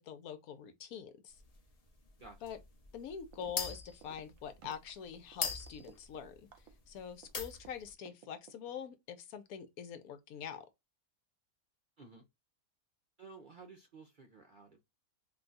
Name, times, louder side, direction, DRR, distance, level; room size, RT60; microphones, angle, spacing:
voice 1, 0.0-1.4 2.4-2.6 2.9-6.5 6.9-10.7, left 8 dB, 80° left, 1.1 m, -45 dB
sound 1, 1.3-7.0 7.3-7.9, left 4 dB, 40° left, 0.6 m, -41 dB
sound 2, 3.3-3.6 3.9-7.7 8.1-8.9, right 9 dB, 70° right, 1.0 m, -56 dB
voice 2, 13.2-14.8, right 4 dB, 55° right, 0.5 m, -54 dB
2.7 x 2.3 x 3.8 m
omnidirectional pair, 1.5 m